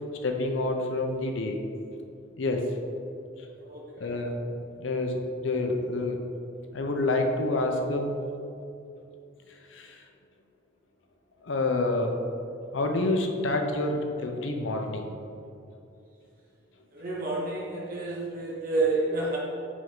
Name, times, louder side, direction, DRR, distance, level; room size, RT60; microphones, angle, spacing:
voice 1, 0.2-1.6 2.4-2.6 4.0-4.4 4.8-6.2 6.7-8.1 9.7-10.0 11.4-12.2 12.7-15.1, left 2 dB, 75° left, 4 dB, 0.6 m, -28 dB
voice 2, 3.6-4.1 16.9-19.4, right 3 dB, 45° right, -4 dB, 0.9 m, -29 dB
7.7 x 3.6 x 3.6 m, 2.6 s
head